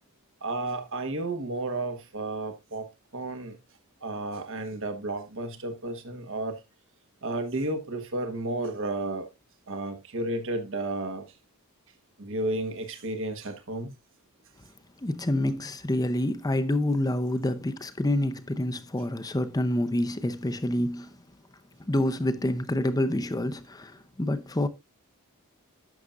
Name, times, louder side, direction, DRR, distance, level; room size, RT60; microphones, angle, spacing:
voice 1, 0.4-2.9 3.1-3.6 4.0-6.6 7.2-9.3 9.7-11.2 12.2-13.9, right 2 dB, 60° right, 1.4 m, -32 dB
voice 2, 15.0-21.1 21.8-24.7, left 1 dB, 15° left, 0.6 m, -27 dB
11.0 x 7.1 x 2.5 m
head